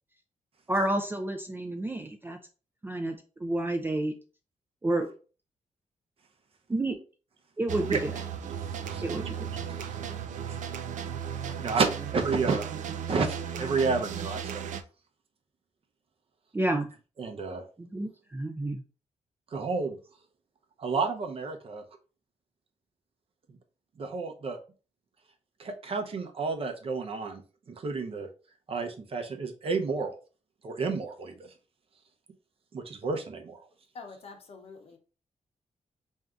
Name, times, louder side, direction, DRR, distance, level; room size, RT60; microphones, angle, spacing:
voice 1, 0.7-2.4 2.8-4.1 4.8-5.1 6.7-7.0 7.6-8.1 9.0-9.5 16.5-16.9 17.8-18.8, right 1 dB, 15° right, 0.4 m, -30 dB
sound 1, 7.7-14.8, right 8 dB, 80° right, 0.4 m, -35 dB
voice 2, 11.6-12.7 13.1-14.6 17.2-17.6 19.5-20.0 20.8-21.8 24.0-24.6 25.6-27.4 27.7-28.3 28.7-30.2 30.6-31.5 32.7-33.6, right 4 dB, 50° right, 0.7 m, -30 dB
voice 3, 33.9-35.0, left 4 dB, 55° left, 0.8 m, -46 dB
3.4 x 2.7 x 3.6 m
wide cardioid pair, 130°, 13 cm